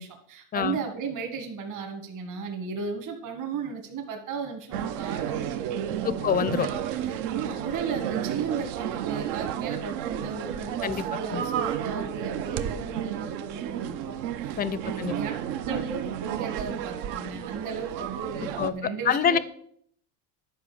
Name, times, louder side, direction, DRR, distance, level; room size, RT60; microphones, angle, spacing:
voice 1, 0.0-15.3 15.6-19.4, right 5 dB, 45° right, 3 dB, 1.7 m, -35 dB
sound 1, 4.7-18.7, right 10 dB, 80° right, 0.9 m, -32 dB
voice 2, 6.0-6.7 10.8-11.0 11.3-11.4 14.6-15.2 18.6-18.7 19.1-19.4, left 8 dB, 20° left, 17 dB, 0.4 m, -25 dB
11.0 x 5.0 x 6.7 m, 0.65 s
cardioid pair, 130°, 42 cm